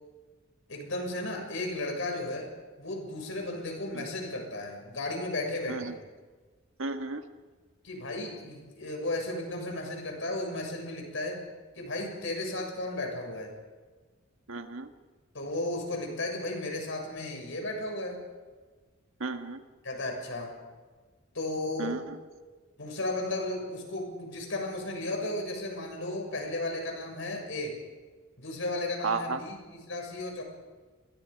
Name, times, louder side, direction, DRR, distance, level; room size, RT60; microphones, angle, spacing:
voice 1, 0.7-2.5 2.8-6.0 7.8-11.4 11.8-13.6 15.3-18.2 19.8-20.5 21.3-22.0 22.8-27.8 28.4-30.4, left 2 dB, 70° left, 2 dB, 6.9 m, -34 dB
voice 2, 6.8-7.2 14.5-14.9 19.2-19.6 21.8-22.2 29.0-29.4, right 3 dB, 75° right, 6 dB, 1.7 m, -33 dB
30.0 x 23.0 x 5.3 m, 1.4 s
head